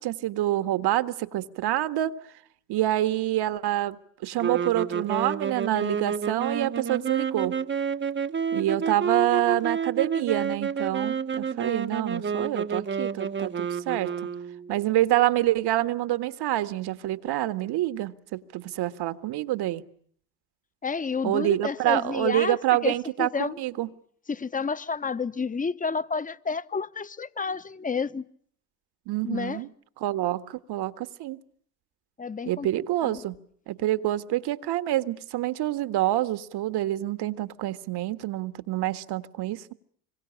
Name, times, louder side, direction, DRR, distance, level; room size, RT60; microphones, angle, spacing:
voice 1, 0.0-2.2 2.7-7.6 8.5-14.1 14.7-19.8 21.2-23.9 29.1-29.7 30.0-31.4 32.5-33.4 33.7-39.7, right 14 dB, 55° right, 1.7 m, -27 dB
sound 1, 4.4-14.8, right 6 dB, 25° right, 1.1 m, -29 dB
voice 2, 20.8-22.9 23.2-23.6 24.3-28.3 29.2-29.6 32.2-32.7 33.0-33.2, left 5 dB, 15° left, 1.1 m, -30 dB
26.0 x 23.0 x 8.8 m
hypercardioid pair, 70°, 46 cm